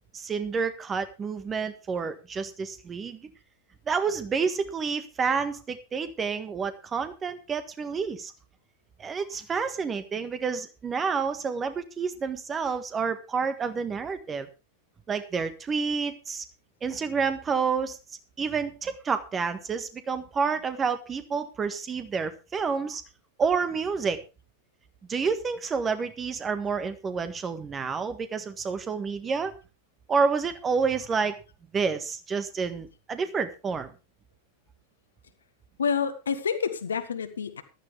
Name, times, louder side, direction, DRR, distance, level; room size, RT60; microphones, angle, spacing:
voice 1, 0.1-3.2 3.9-8.3 9.0-14.5 15.1-16.4 16.8-18.0 18.4-23.0 23.4-24.2 25.1-29.5 30.1-31.4 31.7-33.9, right 5 dB, 20° right, 11 dB, 1.6 m, -29 dB
voice 2, 35.8-37.6, left 6 dB, 70° left, 9 dB, 1.6 m, -28 dB
14.5 x 12.5 x 3.4 m, 0.29 s
figure-of-eight pair, 90°, 0 cm